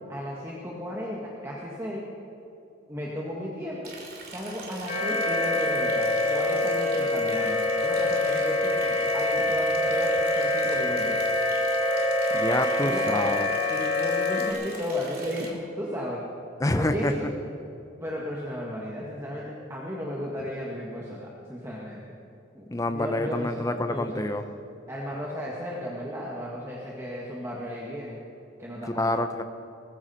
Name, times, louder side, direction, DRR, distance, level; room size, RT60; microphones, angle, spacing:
voice 1, 0.1-1.2 1.4-2.0 2.9-3.9 4.3-11.2 12.8-13.3 13.7-16.2 16.7-17.3 18.0-22.0 22.5-24.5 24.9-28.2 28.6-29.1, left 1 dB, 15° right, -4 dB, 1.7 m, -34 dB
Liquid, 3.8-15.5, right 4 dB, 50° right, 2.9 m, -44 dB
sound 1, 4.9-14.5, left 2 dB, 35° left, 2.4 m, -25 dB
voice 2, 12.3-13.5 16.6-17.1 22.7-24.4 28.8-29.4, left 1 dB, 15° left, 8 dB, 0.6 m, -27 dB
20.0 x 15.0 x 4.3 m, 2.9 s
head